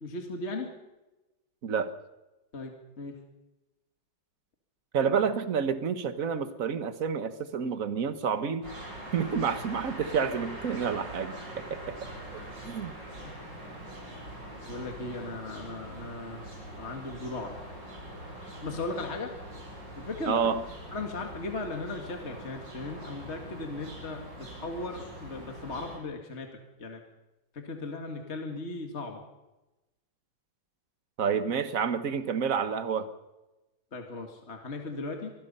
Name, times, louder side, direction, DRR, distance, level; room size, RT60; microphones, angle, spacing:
voice 1, 0.0-0.7 2.5-3.2 13.2-13.3 14.7-16.4 16.8-17.5 18.6-19.3 20.0-20.5 20.9-26.5 26.8-27.0 27.5-29.2 33.9-35.3, left 2 dB, 35° left, 3 dB, 2.3 m, -37 dB
voice 2, 4.9-8.7 9.1-12.0 12.3-12.4 12.6-12.9 20.3-20.6 31.2-33.1, right 6 dB, 50° right, 10 dB, 1.5 m, -29 dB
sound 1, 8.6-26.0, right 1 dB, 65° right, 7.0 m, -43 dB
25.0 x 20.0 x 5.6 m, 1.0 s
omnidirectional pair, 2.1 m